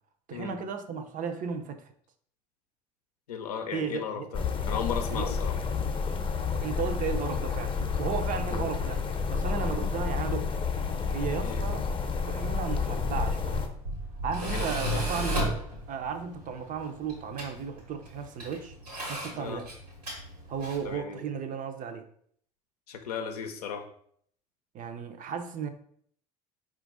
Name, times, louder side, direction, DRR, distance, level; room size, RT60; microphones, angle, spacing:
voice 1, 0.3-1.8 3.7-4.3 5.1-5.3 6.6-9.0 9.3-10.5 11.1-11.9 12.3-13.6 14.2-15.5 15.9-18.7 19.1-19.7 20.5-22.0 24.7-25.7, right 6 dB, 40° right, 8 dB, 0.6 m, -34 dB
voice 2, 3.3-5.6 8.5-8.6 11.4-11.6 14.4-15.2 19.3-19.6 20.8-21.2 22.9-23.9, left 7 dB, 75° left, 5 dB, 0.6 m, -36 dB
sound 1, 4.3-13.7, left 5 dB, 25° left, 0.7 m, -30 dB
Tools, 13.0-20.9, right 1 dB, 90° right, 1.2 m, -35 dB
4.5 x 2.5 x 3.9 m, 0.63 s
figure-of-eight pair, 60°, 20 cm